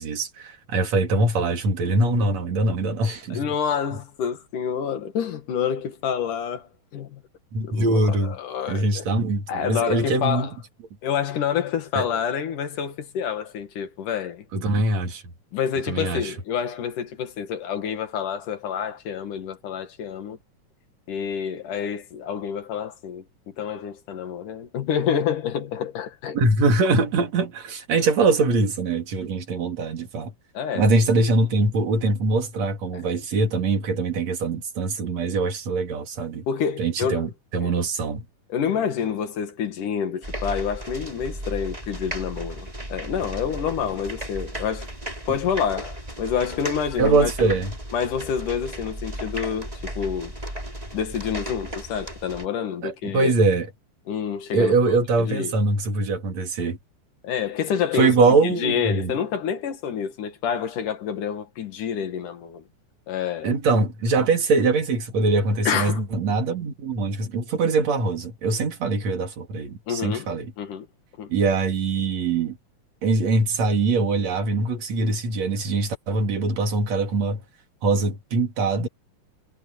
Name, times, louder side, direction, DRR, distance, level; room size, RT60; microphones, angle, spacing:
voice 1, 0.0-3.5 7.5-8.4 8.7-10.5 12.0-12.1 14.5-15.2 15.9-16.3 26.3-30.3 30.8-36.4 36.8-38.2 47.0-47.7 52.8-53.7 54.5-56.8 57.9-59.1 63.4-70.5 71.3-72.6 73.0-77.4 77.8-78.9, right 3 dB, 60° right, 3.9 m, -23 dB
voice 2, 3.3-7.2 7.6-9.1 9.5-10.5 11.0-14.5 15.5-20.4 21.1-26.4 30.6-30.9 36.5-37.3 37.6-37.7 38.5-44.9 45.3-47.6 47.9-50.3 50.9-53.3 54.1-54.7 55.2-55.5 57.2-62.6 63.1-63.5 65.7-66.0 69.9-70.3 70.6-70.9 71.2-71.3, left 7 dB, 85° left, 3.6 m, -28 dB
sound 1, 40.2-52.5, right 1 dB, 10° right, 6.0 m, -35 dB
omnidirectional pair, 3.5 m